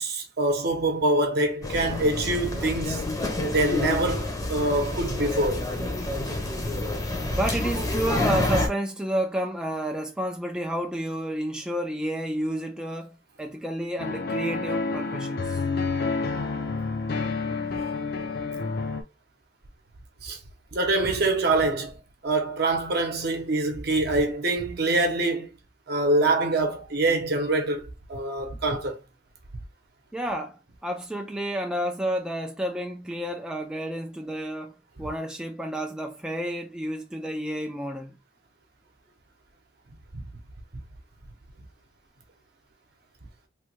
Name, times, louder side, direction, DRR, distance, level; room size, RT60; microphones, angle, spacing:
voice 1, 0.0-3.1 3.5-5.6 20.2-20.4 20.7-21.9 22.2-25.5 25.9-27.8 28.1-29.0 40.1-40.2, right 2 dB, 60° right, 0.8 m, -25 dB
sound 1, 1.6-8.7, left 1 dB, 20° left, 0.7 m, -28 dB
voice 2, 7.3-15.6 30.1-38.2, right 1 dB, 5° right, 0.3 m, -30 dB
sound 2, 14.0-19.0, left 4 dB, 60° left, 0.5 m, -29 dB
3.2 x 2.2 x 3.1 m
head